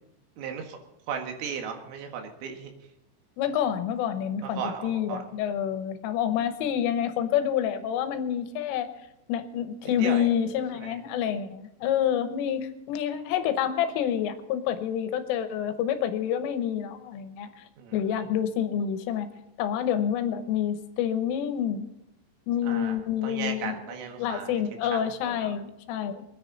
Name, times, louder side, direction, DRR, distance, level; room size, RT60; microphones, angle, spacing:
voice 1, 0.4-0.8 1.1-2.7 4.4-5.2 9.8-10.3 10.7-10.9 17.8-18.0 22.6-23.0 23.2-24.6 24.9-25.5, right 6 dB, 75° right, 3 dB, 4.2 m, -36 dB
voice 2, 3.4-8.9 9.3-17.5 17.9-19.3 19.6-21.9 22.5-23.8 24.2-26.2, left 9 dB, 80° left, 9 dB, 3.5 m, -28 dB
25.0 x 9.9 x 4.0 m, 0.84 s
omnidirectional pair, 5.8 m